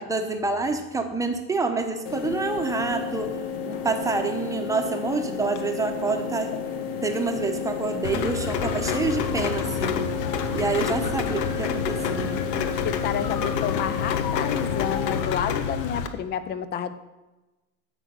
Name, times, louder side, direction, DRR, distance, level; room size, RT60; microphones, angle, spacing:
voice 1, 0.0-3.4 3.7-6.5 7.0-10.0 10.5-12.4, right 3 dB, 5° right, 5 dB, 0.9 m, -27 dB
sound 1, 2.1-15.2, left 6 dB, 50° left, 1.4 m, -31 dB
Rain, 8.0-16.1, left 6 dB, 80° left, 1.3 m, -29 dB
voice 2, 12.2-16.9, left 9 dB, 20° left, 13 dB, 0.5 m, -30 dB
10.0 x 6.5 x 8.0 m, 1.1 s
supercardioid pair, 140°, 48 cm